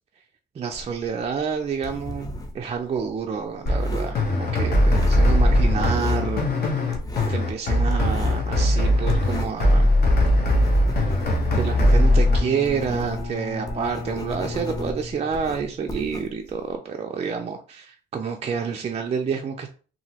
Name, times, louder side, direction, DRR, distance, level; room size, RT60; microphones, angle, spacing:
voice 1, 0.6-6.4 6.7-6.8 7.3-9.9 11.5-19.7, right 6 dB, 30° right, 2 dB, 0.3 m, -28 dB
sound 1, 0.7-2.7 2.9-5.5 5.8-6.4 6.6-9.7 10.0-16.7, left 1 dB, 20° left, 0.6 m, -35 dB
sound 2, 3.7-12.4, left 1 dB, 55° left, 1.0 m, -20 dB
Bowed string instrument, 11.4-15.6, left 3 dB, 80° left, 1.6 m, -35 dB
2.8 x 2.5 x 2.8 m, 0.39 s
cardioid pair, 90°, 20 cm